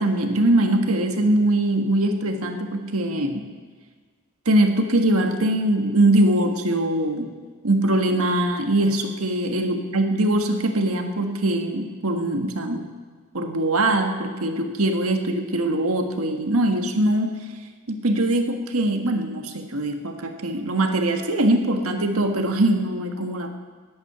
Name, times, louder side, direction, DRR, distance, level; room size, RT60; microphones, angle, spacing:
voice 1, 0.0-3.5 4.4-7.3 7.6-12.8 13.3-17.4 17.9-23.5, right 1 dB, 85° right, 5 dB, 1.6 m, -22 dB
14.5 x 8.7 x 9.9 m, 1.5 s
head